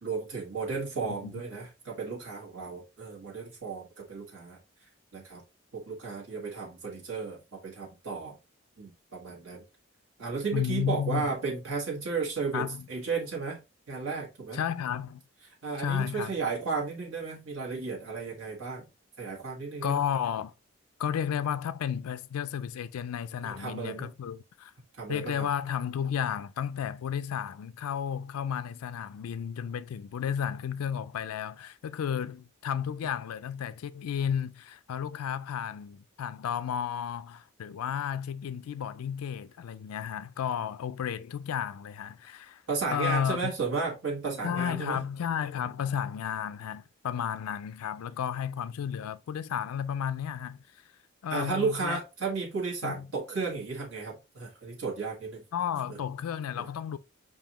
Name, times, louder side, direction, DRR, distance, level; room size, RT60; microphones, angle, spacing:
voice 1, 0.0-4.6 5.1-5.4 5.7-8.4 8.8-9.6 10.2-13.6 13.9-14.6 15.6-18.9 19.2-20.0 23.4-24.1 25.0-25.5 42.7-45.0 51.3-55.4, right 4 dB, 70° right, 1.7 m, -34 dB
voice 2, 10.5-11.3 12.5-12.9 14.5-15.2 15.8-16.4 19.8-20.5 21.0-24.7 25.1-42.6 42.9-43.5 44.4-50.6 51.2-52.0 52.8-53.1 55.5-57.0, left 8 dB, 90° left, 0.4 m, -33 dB
6.9 x 2.6 x 2.9 m
head